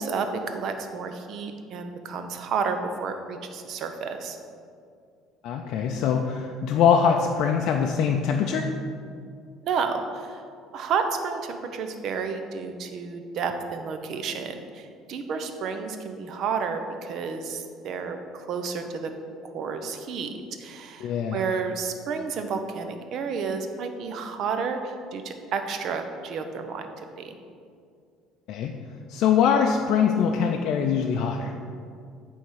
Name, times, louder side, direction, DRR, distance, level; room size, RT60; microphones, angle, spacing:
voice 1, 0.0-4.4 9.6-10.4 10.7-19.1 19.4-20.3 20.6-26.9 27.2-27.4, right 5 dB, 55° right, 7 dB, 0.6 m, -31 dB
voice 2, 5.4-8.7 21.0-21.4 28.5-28.7 29.1-31.5, left 7 dB, 65° left, 2 dB, 0.4 m, -23 dB
8.6 x 3.5 x 4.7 m, 2.3 s
cardioid pair, 120°, 0 cm